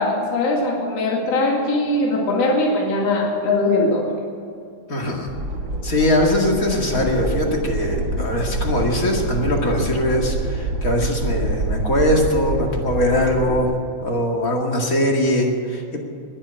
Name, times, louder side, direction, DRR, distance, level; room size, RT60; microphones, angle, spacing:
voice 1, 0.0-4.2, left 2 dB, 60° left, -2 dB, 3.3 m, -20 dB
voice 2, 4.9-5.3 5.8-13.7 14.0-16.0, left 1 dB, 30° left, 0 dB, 2.3 m, -21 dB
sound 1, 5.3-13.6, right 2 dB, 35° right, 2.7 m, -26 dB
20.5 x 8.1 x 8.2 m, 2.5 s
omnidirectional pair, 3.4 m